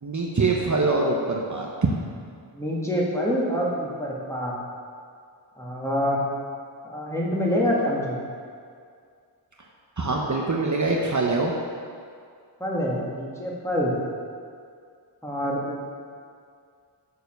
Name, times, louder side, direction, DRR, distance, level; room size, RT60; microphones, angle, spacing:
voice 1, 0.0-1.9 10.0-11.5, right 3 dB, 40° right, -1 dB, 0.8 m, -24 dB
voice 2, 2.5-4.5 5.6-6.2 6.8-8.2 12.6-13.9 15.2-15.9, equal, 5° left, -5 dB, 1.9 m, -26 dB
6.9 x 6.8 x 6.6 m, 2.2 s
wide cardioid pair, 95°, 44 cm